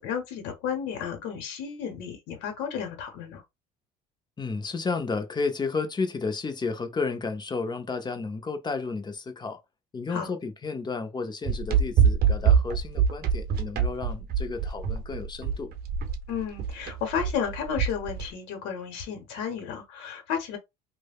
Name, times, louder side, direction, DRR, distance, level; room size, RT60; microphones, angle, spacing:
voice 1, 0.0-3.4 10.1-10.3 16.3-20.6, left 7 dB, 70° left, 0.9 m, -32 dB
voice 2, 4.4-9.6 9.9-15.7, left 4 dB, 20° left, 0.6 m, -32 dB
sound 1, 11.4-18.3, right 7 dB, 50° right, 0.6 m, -25 dB
3.1 x 2.1 x 2.3 m
hypercardioid pair, 75°, 20 cm